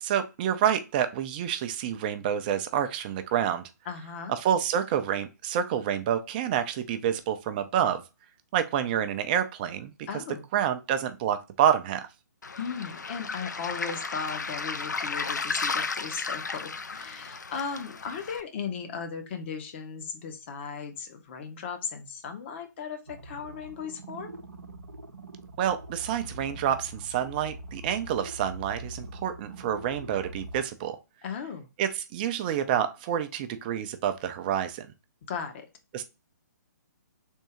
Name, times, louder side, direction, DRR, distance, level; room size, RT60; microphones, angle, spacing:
voice 1, 0.0-3.6 4.3-8.0 8.5-10.1 10.5-12.1 25.6-31.0 31.8-34.9 35.9-36.0, right 9 dB, 30° right, 0.4 m, -28 dB
voice 2, 3.9-4.4 10.1-10.5 12.6-24.4 31.2-31.7 35.3-35.7, left 6 dB, 40° left, 0.8 m, -37 dB
Waves surf, 12.4-18.4, left 4 dB, 75° left, 0.5 m, -34 dB
sound 1, 23.1-30.6, right 1 dB, 85° right, 0.7 m, -43 dB
3.6 x 2.7 x 4.2 m
figure-of-eight pair, 130°, 10 cm